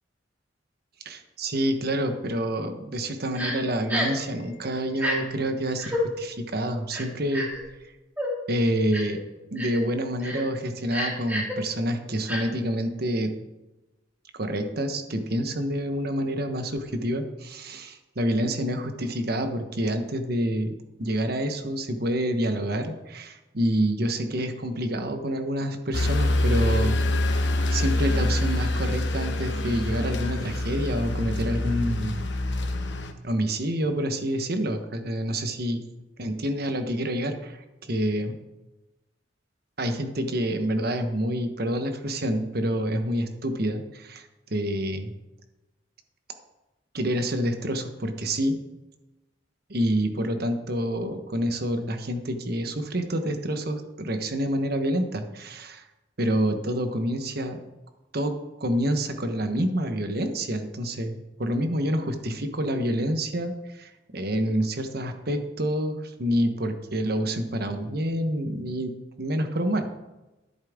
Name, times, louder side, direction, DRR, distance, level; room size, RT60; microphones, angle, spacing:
voice 1, 1.0-7.5 8.5-9.2 9.5-13.3 14.3-20.7 21.0-27.4 27.7-32.3 33.2-35.8 36.2-38.4 39.8-45.1 46.9-48.6 49.7-55.9 56.2-57.6 58.1-69.9, equal, 55° right, 7 dB, 1.2 m, -27 dB
Crying sobbing, 3.4-3.5 3.9-4.2 4.9-5.2 5.8-6.0 6.9-7.6 8.2-8.3 8.9-9.2 9.6-9.8 10.2-10.4 10.9-11.5 12.3-12.4, left 1 dB, 10° right, 2.4 m, -29 dB
sound 1, 25.9-33.1, left 1 dB, 70° left, 1.1 m, -25 dB
12.0 x 10.5 x 3.7 m, 1.0 s
head